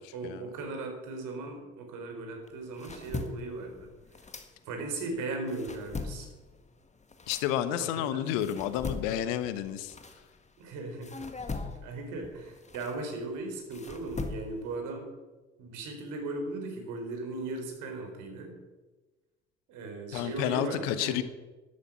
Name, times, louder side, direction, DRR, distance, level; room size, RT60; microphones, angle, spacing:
voice 1, 0.1-3.9 4.7-6.3 7.8-8.3 10.6-11.2 11.8-15.0 15.6-18.6 19.7-21.2, right 2 dB, 55° right, 4 dB, 4.1 m, -37 dB
sound 1, 2.4-5.0 5.3-10.6 11.0-14.8, left 3 dB, 20° left, 1.8 m, -41 dB
voice 2, 7.3-9.9 20.1-21.2, left 11 dB, 60° left, 12 dB, 1.2 m, -30 dB
13.0 x 12.0 x 6.0 m, 1.2 s
figure-of-eight pair, 60°, 36 cm